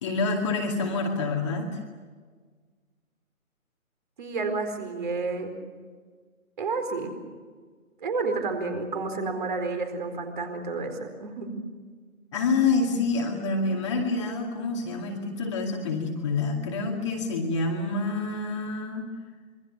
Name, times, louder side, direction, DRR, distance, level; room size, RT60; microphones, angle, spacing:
voice 1, 0.0-1.8 12.3-19.1, left 3 dB, 20° left, 1 dB, 2.2 m, -27 dB
voice 2, 4.2-5.5 6.6-7.1 8.0-11.6, right 3 dB, 35° right, 6 dB, 4.3 m, -30 dB
27.0 x 24.0 x 7.1 m, 1.5 s
figure-of-eight pair, 155°, 42 cm